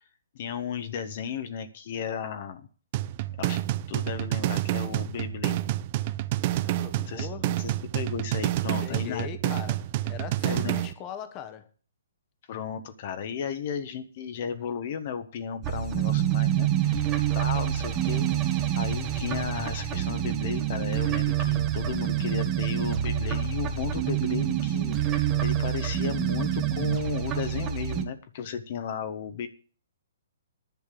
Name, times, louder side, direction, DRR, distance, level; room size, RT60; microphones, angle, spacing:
voice 1, 0.3-2.7 3.4-3.6 3.9-5.6 6.9-9.3 10.4-10.8 12.5-17.1 17.3-29.5, left 7 dB, 45° left, 1.3 m, -34 dB
sound 1, 2.9-10.9, right 15 dB, 40° right, 0.5 m, -29 dB
voice 2, 6.4-7.6 8.8-11.7, left 8 dB, 30° left, 1.4 m, -40 dB
sound 2, 15.6-28.0, right 11 dB, 25° right, 1.5 m, -27 dB
10.5 x 6.6 x 8.6 m
figure-of-eight pair, 130°, 0 cm